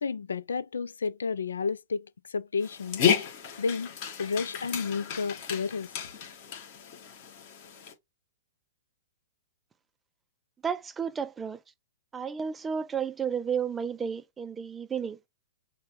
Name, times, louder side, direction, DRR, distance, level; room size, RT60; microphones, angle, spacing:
voice 1, 0.0-3.0 3.6-3.9 4.2-5.9, left 5 dB, 85° left, 0.4 m, -31 dB
Dog, 2.6-7.9, left 7 dB, 45° left, 2.1 m, -32 dB
voice 2, 10.6-11.6 12.1-15.2, right 7 dB, 15° right, 0.4 m, -32 dB
6.5 x 2.2 x 2.9 m
hypercardioid pair, 125°, 0 cm